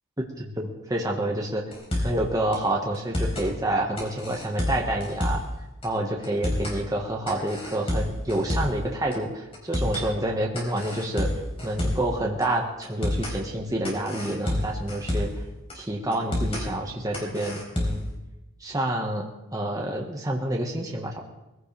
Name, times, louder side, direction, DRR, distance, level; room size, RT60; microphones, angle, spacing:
voice 1, 0.4-1.6 2.0-5.4 5.8-11.3 11.6-15.3 15.7-18.1 18.6-21.2, right 1 dB, 15° right, -1 dB, 1.6 m, -28 dB
sound 1, 1.7-2.2 2.5-2.6 2.9-3.5 4.0-5.5 5.8-5.9 6.2-6.8 7.3-8.8 9.1-9.2 9.5-10.1 10.5-12.1 12.4-12.5 12.8-13.4 13.8-15.4 15.7-15.8 16.1-16.6 17.1-18.1, left 1 dB, 25° left, 4.2 m, -28 dB
21.5 x 16.0 x 3.4 m, 1.0 s
head